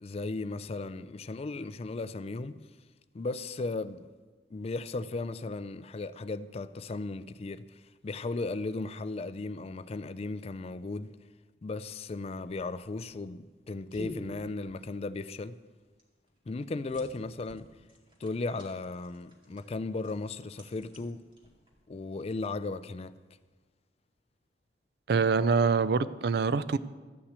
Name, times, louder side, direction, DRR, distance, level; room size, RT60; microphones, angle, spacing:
voice 1, 0.0-2.6 3.1-4.1 4.5-11.1 11.6-15.6 16.5-17.7 18.2-21.2 21.9-23.2, left 3 dB, 35° left, 0.4 m, -36 dB
sound 1, 13.5-21.9, equal, 30° right, 2.2 m, -50 dB
voice 2, 25.1-26.8, right 5 dB, 60° right, 0.4 m, -25 dB
13.0 x 5.9 x 8.1 m
head